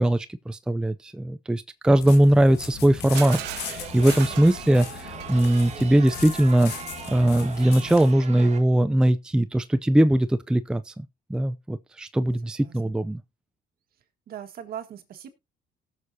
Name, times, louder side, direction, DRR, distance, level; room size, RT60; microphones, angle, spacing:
voice 1, 0.0-6.7 7.1-13.2, right 1 dB, 5° right, 0.5 m, -21 dB
sound 1, 2.0-8.1, left 8 dB, 80° left, 1.8 m, -38 dB
voice 2, 2.4-2.7 12.4-12.9 14.3-15.3, right 10 dB, 60° right, 1.7 m, -40 dB
Shatter, 3.1-5.9, right 15 dB, 80° right, 0.7 m, -38 dB
Chatter, 3.2-8.6, right 7 dB, 40° right, 1.7 m, -40 dB
18.0 x 6.6 x 2.8 m
cardioid pair, 110°, 17 cm